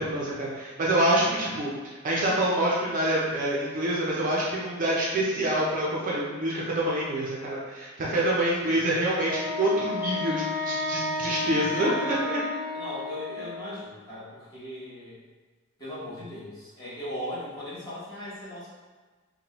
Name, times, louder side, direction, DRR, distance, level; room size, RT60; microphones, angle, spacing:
voice 1, 0.0-1.7 2.0-12.4, right 1 dB, 40° right, -5 dB, 0.5 m, -26 dB
Wind instrument woodwind instrument, 9.2-13.9, left 2 dB, 5° right, 1.2 m, -32 dB
voice 2, 11.1-11.6 12.7-15.2 15.8-18.8, left 1 dB, 20° left, -10 dB, 1.0 m, -39 dB
3.0 x 2.2 x 2.9 m, 1.3 s
head